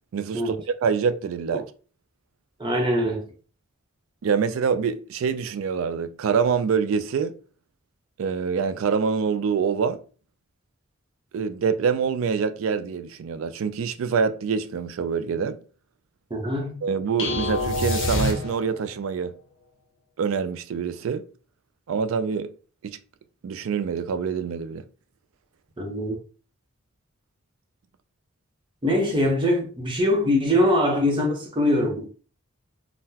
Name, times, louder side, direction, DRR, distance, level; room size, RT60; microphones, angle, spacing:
voice 1, 0.1-0.6 0.8-1.7 4.2-7.4 8.2-10.0 11.3-15.6 16.8-19.4 20.2-21.3 21.9-22.5 22.8-23.0 23.4-24.9, right 6 dB, 75° right, 0.3 m, -25 dB
voice 2, 2.6-3.2 16.3-16.7 25.8-26.2 28.8-32.1, left 1 dB, 25° right, 0.8 m, -22 dB
sound 1, 17.2-18.9, left 2 dB, 60° left, 0.9 m, -26 dB
3.7 x 2.1 x 2.7 m
head